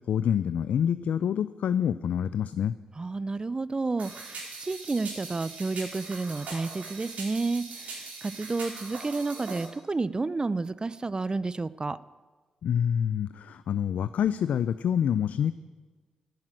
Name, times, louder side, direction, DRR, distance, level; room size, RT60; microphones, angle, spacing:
voice 1, 0.0-2.7 12.6-15.5, left 8 dB, 70° left, 14 dB, 0.4 m, -27 dB
voice 2, 3.0-12.0, right 3 dB, 30° right, 18 dB, 0.5 m, -31 dB
sound 1, 4.0-9.7, right 3 dB, 70° right, 4.0 m, -41 dB
10.5 x 8.9 x 8.9 m, 1.4 s
hypercardioid pair, 40°, 3 cm